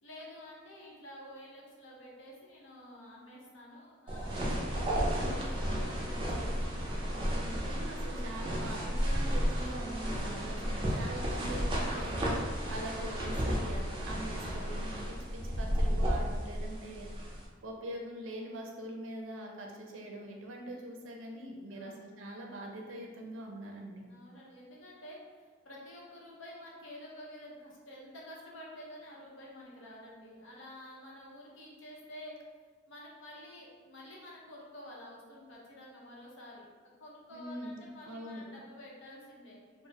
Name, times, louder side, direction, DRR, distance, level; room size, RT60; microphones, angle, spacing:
voice 1, 0.0-7.2 21.7-22.1 24.1-32.3 32.9-36.7 37.0-39.9, left 1 dB, 75° left, -4 dB, 0.7 m, -50 dB
sound 1, 4.1-17.5, equal, 25° right, 0.4 m, -33 dB
voice 2, 7.4-24.0 37.3-38.4, right 1 dB, 80° right, 0 dB, 0.4 m, -43 dB
3.1 x 2.0 x 2.7 m, 1.5 s
head